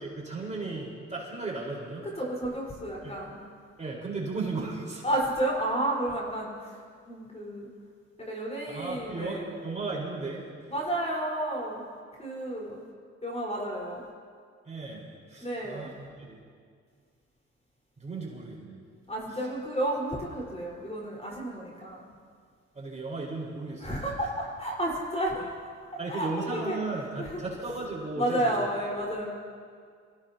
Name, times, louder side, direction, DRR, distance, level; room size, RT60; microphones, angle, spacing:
voice 1, 0.0-2.1 3.0-3.2 3.8-5.0 8.7-10.7 14.6-16.4 18.0-18.8 22.7-24.0 26.0-28.4, right 3 dB, 25° right, -4 dB, 4.6 m, -35 dB
voice 2, 2.2-3.4 5.0-6.8 7.0-7.7 8.2-9.5 10.7-11.8 12.2-12.8 13.2-14.0 15.4-15.9 19.1-22.0 23.8-25.6 25.9-26.8 27.2-27.4 28.1-29.3, right 1 dB, 20° left, -3 dB, 4.7 m, -31 dB
27.0 x 16.5 x 2.9 m, 2.1 s
cardioid pair, 90°, 30 cm